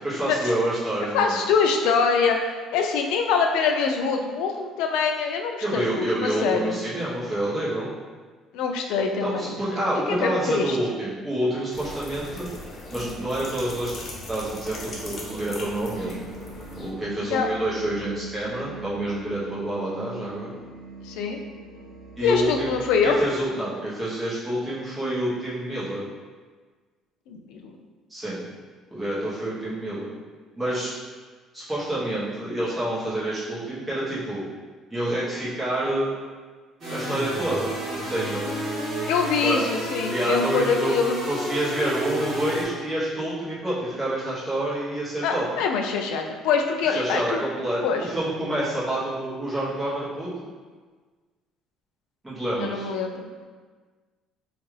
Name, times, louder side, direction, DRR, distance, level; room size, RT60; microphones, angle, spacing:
voice 1, 0.0-1.4 5.6-7.9 9.2-12.5 12.9-13.9 14.3-16.2 16.8-20.5 22.2-22.7 23.0-26.0 28.1-28.4 28.9-30.1 30.6-30.9 31.5-34.4 34.9-36.1 36.9-38.5 39.4-39.6 40.1-40.9 41.3-45.5 46.9-50.3 52.2-52.9, right 1 dB, 10° right, -9 dB, 1.0 m, -28 dB
voice 2, 1.1-6.8 8.5-9.5 10.1-10.8 17.3-17.5 21.0-21.4 22.2-23.2 27.3-27.7 39.1-41.2 45.2-47.4 47.8-48.1 52.6-53.4, left 5 dB, 85° left, 3 dB, 0.3 m, -24 dB
sound 1, 11.7-16.9, left 2 dB, 40° left, 0.6 m, -39 dB
sound 2, 13.2-23.3, right 4 dB, 60° right, 0.4 m, -42 dB
sound 3, 36.8-42.6, equal, 40° right, 1.3 m, -31 dB
2.9 x 2.4 x 3.1 m, 1.4 s
cardioid pair, 125°, 0 cm